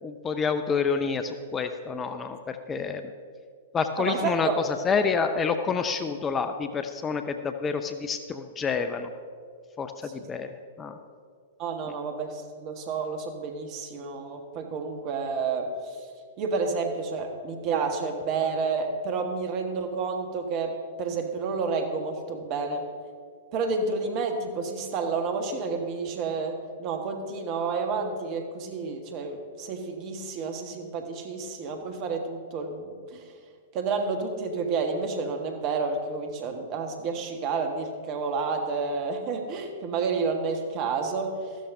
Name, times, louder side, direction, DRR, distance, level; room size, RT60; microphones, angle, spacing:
voice 1, 0.0-3.0 3.7-4.5 4.8-9.1 9.8-10.5 10.8-11.0, left 5 dB, 20° left, 8 dB, 0.6 m, -28 dB
voice 2, 4.0-4.6 10.0-10.3 11.6-16.0 16.4-22.9 23.5-33.2 33.7-41.4, right 4 dB, 40° right, 5 dB, 1.4 m, -30 dB
14.0 x 12.5 x 2.7 m, 2.1 s
figure-of-eight pair, 105°, 0 cm